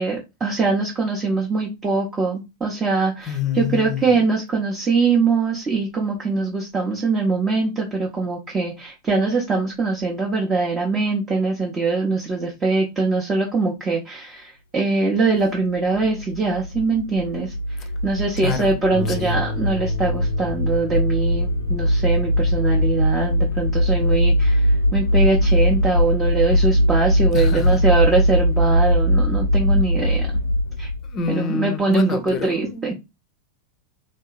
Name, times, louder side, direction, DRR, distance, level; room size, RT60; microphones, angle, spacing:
voice 1, 0.0-17.5 18.0-30.3 30.8-30.9 31.3-32.9, right 3 dB, 20° right, 0.8 m, -22 dB
voice 2, 3.3-4.3 18.4-18.7 19.1-19.4 27.3-27.8 31.1-32.9, left 5 dB, 30° left, 0.6 m, -27 dB
sound 1, 15.9-31.2, equal, 75° left, 0.4 m, -20 dB
Harp, 18.9-28.1 28.9-29.0 29.5-29.6, left 5 dB, 70° right, 1.5 m, -36 dB
3.2 x 2.7 x 2.4 m
figure-of-eight pair, 90°, 0 cm